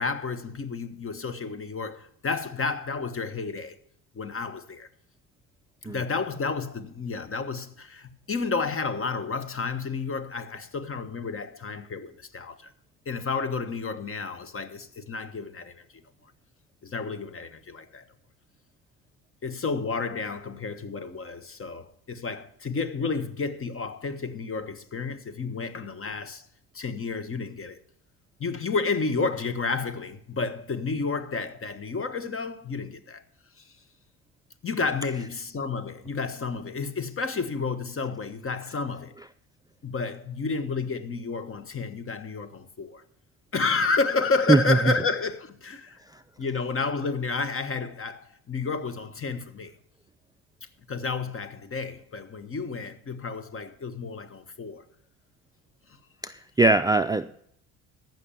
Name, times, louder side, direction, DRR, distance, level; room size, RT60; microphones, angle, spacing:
voice 1, 0.0-3.8 4.1-4.9 5.8-12.7 13.0-15.8 16.8-18.1 19.4-26.5 26.7-27.8 28.4-33.2 33.6-33.7 34.6-39.1 39.8-43.0 43.5-46.0 46.4-49.7 50.9-54.8, left 4 dB, 35° left, 1.4 m, -31 dB
voice 2, 56.2-57.4, right 2 dB, 10° right, 0.5 m, -21 dB
14.5 x 6.1 x 7.0 m
supercardioid pair, 75°, 39 cm